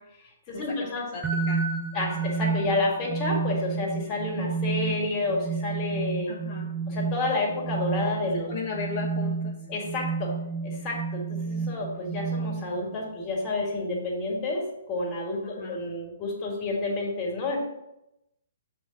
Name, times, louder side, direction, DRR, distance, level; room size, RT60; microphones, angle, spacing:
voice 1, 0.5-1.1 1.9-6.3 6.9-8.5 9.7-10.3 10.6-17.6, left 2 dB, 30° left, -1 dB, 1.9 m, -30 dB
voice 2, 1.1-1.6 6.3-6.7 8.5-9.5 15.4-15.8, left 4 dB, 50° left, -3 dB, 1.0 m, -35 dB
sound 1, 1.2-13.0, right 5 dB, 15° right, 0.6 m, -31 dB
6.3 x 3.5 x 5.1 m, 0.87 s
hypercardioid pair, 150°, 0 cm